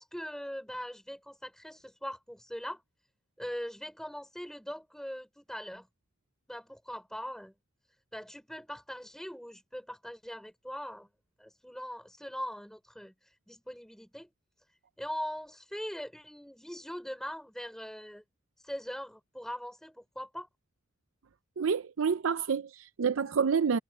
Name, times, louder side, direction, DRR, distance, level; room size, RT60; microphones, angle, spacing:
voice 1, 0.0-2.8 3.4-5.9 6.5-7.5 8.1-11.1 11.4-13.1 13.5-14.3 15.0-18.2 18.6-20.5, equal, ahead, 3.7 m, -41 dB
voice 2, 21.6-23.8, right 6 dB, 80° right, 0.5 m, -28 dB
head